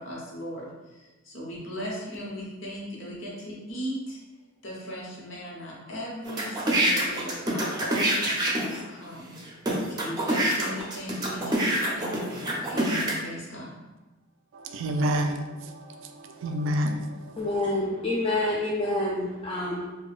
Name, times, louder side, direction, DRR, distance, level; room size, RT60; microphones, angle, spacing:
voice 1, 0.0-4.2 4.6-9.3 9.9-13.7, equal, 75° left, -4 dB, 1.0 m, -38 dB
sound 1, 6.3-8.8 9.4-9.5 9.7-13.1, right 1 dB, 20° right, 0.6 m, -26 dB
voice 2, 14.5-17.5, equal, 75° right, 5 dB, 0.4 m, -29 dB
voice 3, 17.4-19.9, left 1 dB, 25° left, -4 dB, 0.3 m, -27 dB
4.9 x 2.2 x 2.4 m, 1.1 s
head